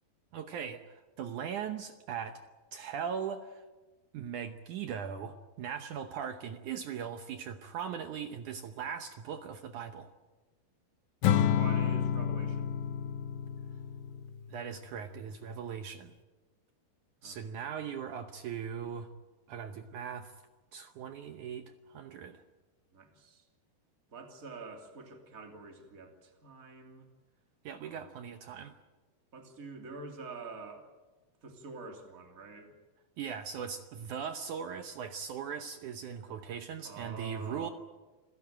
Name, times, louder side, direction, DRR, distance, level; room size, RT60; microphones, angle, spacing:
voice 1, 0.3-2.4 2.7-3.6 4.1-10.1 14.5-16.1 17.2-19.1 19.5-20.3 20.7-22.4 27.7-28.8 33.2-37.7, right 7 dB, 70° right, 8 dB, 1.9 m, -39 dB
Acoustic guitar / Strum, 11.2-14.6, left 9 dB, 70° left, 2.6 m, -30 dB
voice 2, 11.3-12.8 17.2-17.6 22.9-23.4 24.1-27.1 27.8-28.1 29.3-30.9 31.4-32.7 36.5-36.6 36.8-37.7, right 3 dB, 25° right, 3 dB, 2.9 m, -47 dB
28.0 x 16.0 x 9.0 m, 1.2 s
omnidirectional pair, 4.7 m